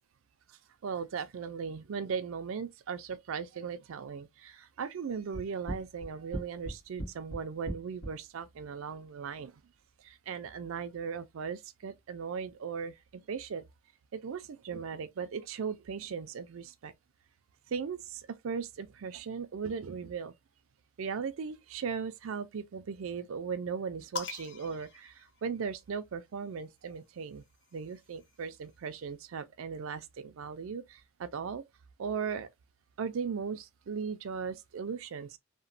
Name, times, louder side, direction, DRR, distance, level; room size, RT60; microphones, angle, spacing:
voice 1, 0.5-9.5 10.0-13.6 14.1-16.9 17.7-20.3 21.0-27.4 27.7-31.6 32.0-32.5 33.0-35.4, right 6 dB, 65° right, 0.4 m, -38 dB
sound 1, 5.3-8.2, right 1 dB, 80° left, 1.3 m, -38 dB
sound 2, 24.2-26.0 27.1-28.7, left 5 dB, 55° left, 0.6 m, -44 dB
2.9 x 2.1 x 2.5 m
head